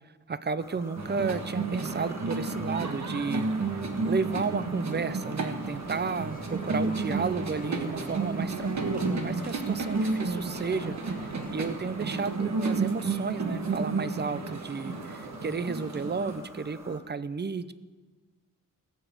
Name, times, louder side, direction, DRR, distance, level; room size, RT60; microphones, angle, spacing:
voice 1, 0.3-17.7, right 4 dB, 30° right, 15 dB, 0.6 m, -32 dB
sound 1, 0.6-17.0, equal, 10° right, 2.1 m, -48 dB
sound 2, 1.0-16.4, right 3 dB, 55° right, 1.4 m, -32 dB
sound 3, 5.7-11.8, left 3 dB, 25° left, 0.9 m, -48 dB
17.5 x 7.2 x 8.1 m, 1.3 s
wide cardioid pair, 105°, 33 cm